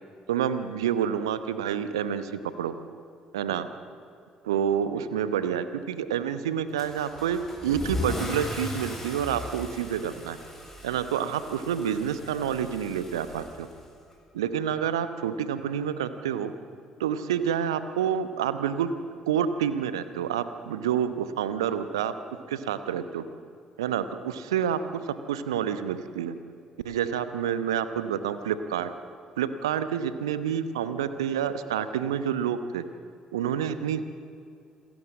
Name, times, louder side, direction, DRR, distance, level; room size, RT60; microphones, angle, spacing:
voice 1, 0.3-2.7 3.3-3.7 4.4-10.4 10.8-13.7 14.3-16.5 17.0-18.9 19.3-22.1 22.5-23.2 23.8-26.3 26.8-28.9 29.4-32.8 33.3-34.0, right 8 dB, 75° right, 12 dB, 0.9 m, -28 dB
Car / Engine starting / Accelerating revving vroom, 6.8-14.1, left 1 dB, 5° left, 6.7 m, -37 dB
27.0 x 13.5 x 7.4 m, 2.5 s
figure-of-eight pair, 50°, 3 cm